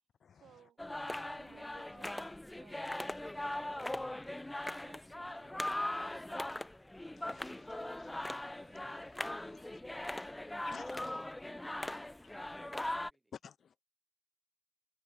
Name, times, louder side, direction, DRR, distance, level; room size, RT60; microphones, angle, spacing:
voice 1, 0.3-0.8 1.3-3.0 3.3-6.5, right 9 dB, 65° right, 6.3 m, -63 dB
sound 1, 0.8-13.1, left 1 dB, 10° left, 1.0 m, -40 dB
voice 2, 7.2-8.4 9.4-9.8 10.6-11.5 13.3-13.8, left 7 dB, 50° left, 0.7 m, -55 dB
voice 3, 8.4-11.3 11.5-13.4, right 2 dB, 15° right, 5.5 m, -68 dB
cardioid pair, 75°, 0 cm